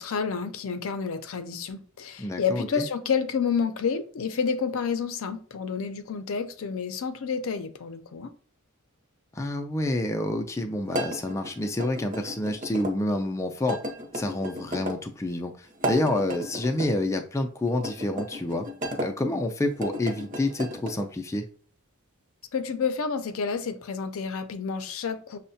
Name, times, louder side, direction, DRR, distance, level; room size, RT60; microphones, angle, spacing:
voice 1, 0.0-8.3 22.5-25.4, left 6 dB, 75° left, 0.5 m, -29 dB
voice 2, 2.2-2.8 9.3-13.8 14.1-18.7 19.0-21.4, left 1 dB, 15° left, 0.3 m, -28 dB
sound 1, 10.9-12.9 13.7-15.0 15.7-16.9 17.8-19.1 19.7-21.1, equal, 40° right, 0.7 m, -34 dB
6.2 x 2.1 x 2.7 m
head